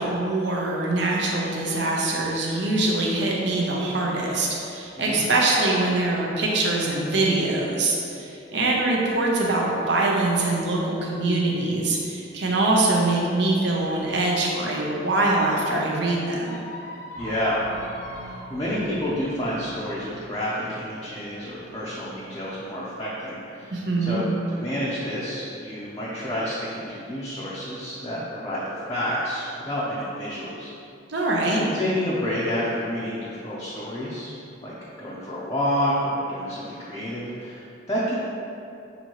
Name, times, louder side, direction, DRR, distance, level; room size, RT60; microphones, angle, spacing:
voice 1, 0.0-16.6 23.7-24.2 31.1-31.6, right 2 dB, 65° right, -2 dB, 0.7 m, -23 dB
Squeak, 13.8-15.8 16.4-18.5, left 1 dB, 70° left, 0.5 m, -39 dB
voice 2, 17.2-17.6 18.2-24.2 24.5-28.6 28.9-30.7 31.7-34.3 34.6-38.1, equal, 20° left, -9 dB, 0.5 m, -29 dB
sound 1, 17.2-23.5, right 2 dB, 40° right, 1.2 m, -45 dB
6.0 x 2.7 x 3.0 m, 2.6 s
head